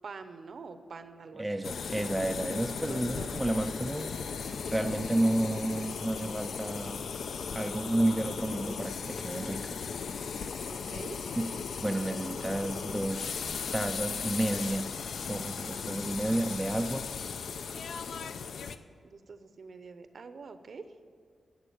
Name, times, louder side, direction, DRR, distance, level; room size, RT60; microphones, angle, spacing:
voice 1, 0.0-1.6 2.8-3.5 10.7-11.2 19.0-20.8, right 4 dB, 50° right, 10 dB, 0.8 m, -45 dB
voice 2, 1.4-7.1 7.6-9.8 11.4-11.5 11.8-13.4 13.7-14.9 15.3-17.1, right 1 dB, 5° right, 6 dB, 0.4 m, -31 dB
sound 1, 1.6-18.8, left 6 dB, 70° left, 0.6 m, -37 dB
11.5 x 8.0 x 9.9 m, 2.1 s
wide cardioid pair, 175°, 0 cm